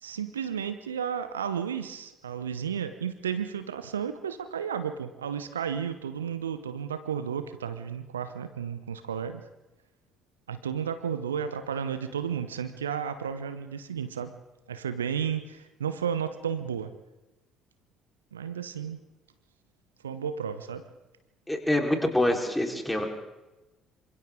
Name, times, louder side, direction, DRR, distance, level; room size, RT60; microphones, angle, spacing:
voice 1, 0.0-9.4 10.5-14.3 14.7-16.9 18.3-19.0 20.0-20.8, right 8 dB, 80° right, 11 dB, 0.9 m, -33 dB
voice 2, 21.5-23.1, left 1 dB, 5° left, 2 dB, 4.2 m, -25 dB
27.5 x 26.0 x 3.8 m, 1.0 s
figure-of-eight pair, 50°, 0 cm